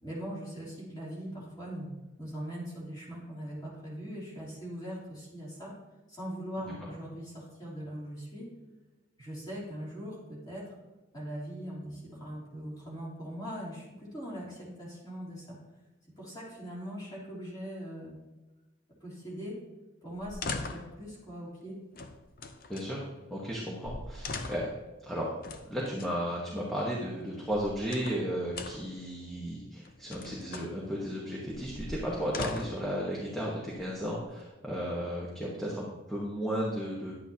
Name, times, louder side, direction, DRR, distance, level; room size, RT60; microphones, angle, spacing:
voice 1, 0.0-5.7 6.1-8.5 9.2-10.7 11.1-15.6 16.2-18.2 19.0-19.6 20.0-21.8 32.0-32.3, equal, 20° left, -7 dB, 3.3 m, -41 dB
sound 1, 20.2-21.0 21.9-22.9 23.5-23.6 23.8-24.8 25.4-26.1 27.3-28.2 28.5-29.0 29.8-30.7 31.5-32.9 33.7-34.4, left 3 dB, 45° left, 0.6 m, -40 dB
voice 2, 22.7-23.0 23.3-24.7 25.1-25.3 25.7-37.1, equal, ahead, -5 dB, 1.2 m, -34 dB
10.5 x 9.0 x 2.9 m, 1.1 s
head